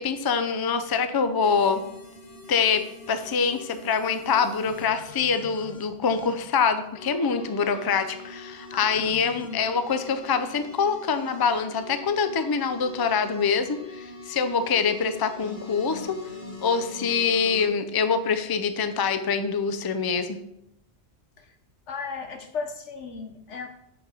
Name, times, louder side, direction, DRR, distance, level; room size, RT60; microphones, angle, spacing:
voice 1, 0.0-1.8 2.5-16.2 16.6-20.4, left 5 dB, 30° left, 9 dB, 0.4 m, -25 dB
sound 1, 1.4-6.3 7.0-17.7, left 2 dB, 45° left, 1.7 m, -43 dB
voice 2, 8.7-9.6 21.4-21.6 21.9-23.7, left 5 dB, 90° left, 5 dB, 1.4 m, -36 dB
5.8 x 5.3 x 6.7 m, 0.79 s
omnidirectional pair, 1.2 m